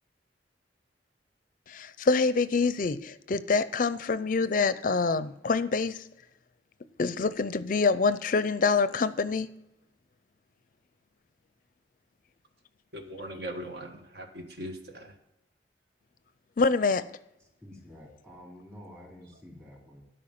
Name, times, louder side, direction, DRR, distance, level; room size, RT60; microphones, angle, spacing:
voice 1, 1.7-6.0 7.0-9.5 16.6-17.0, left 4 dB, 50° left, 14 dB, 0.5 m, -26 dB
voice 2, 12.9-15.1, right 1 dB, 65° right, 4 dB, 1.5 m, -40 dB
voice 3, 17.4-20.0, left 1 dB, 20° right, -3 dB, 3.1 m, -49 dB
12.5 x 5.2 x 5.9 m, 0.90 s
head